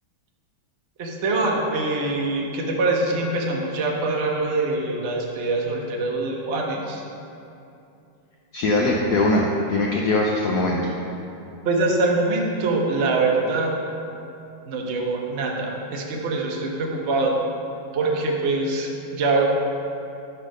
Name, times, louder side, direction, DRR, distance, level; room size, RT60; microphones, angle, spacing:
voice 1, 1.0-7.0 11.6-13.7 14.7-17.4 17.9-19.4, right 2 dB, 80° right, 0 dB, 0.6 m, -24 dB
voice 2, 8.5-10.9, left 2 dB, 80° left, -1 dB, 0.9 m, -21 dB
5.8 x 5.5 x 5.1 m, 2.7 s
omnidirectional pair, 2.3 m